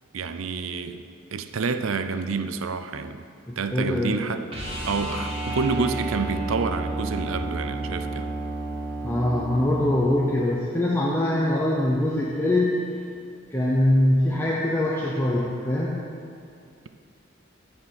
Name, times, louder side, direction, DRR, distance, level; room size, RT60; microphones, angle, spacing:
voice 1, 0.1-1.0 1.3-3.2 3.6-4.5 4.9-8.3, right 4 dB, 90° right, 9 dB, 0.5 m, -28 dB
voice 2, 3.5-4.2 9.0-12.8 13.5-16.0, left 1 dB, 10° left, -5 dB, 0.7 m, -23 dB
sound 1, 4.5-10.5 13.0-13.1, right 2 dB, 30° right, 2.0 m, -31 dB
11.0 x 4.4 x 8.0 m, 2.4 s
head